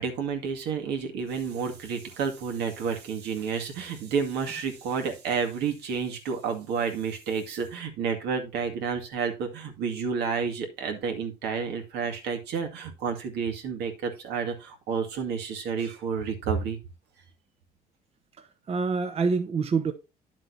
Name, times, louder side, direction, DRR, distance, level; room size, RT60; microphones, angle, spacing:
voice 1, 0.0-16.8, right 6 dB, 80° right, 2.1 m, -30 dB
voice 2, 18.4-19.9, right 4 dB, 35° right, 0.9 m, -27 dB
10.0 x 7.5 x 2.7 m
cardioid pair, 110°, 17 cm